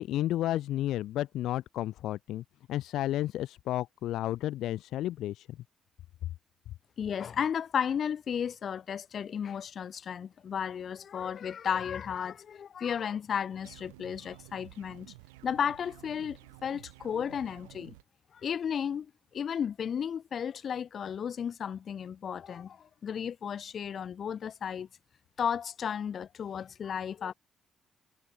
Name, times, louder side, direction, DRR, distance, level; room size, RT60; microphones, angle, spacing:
voice 1, 0.0-5.6, left 13 dB, 70° left, 2.0 m, -32 dB
voice 2, 7.0-15.1 15.4-17.9 18.3-24.9 25.4-27.3, left 8 dB, 55° left, 4.4 m, -34 dB
sound 1, 13.6-18.0, right 25 dB, 85° right, 7.5 m, -52 dB
hypercardioid pair, 45°, 0 cm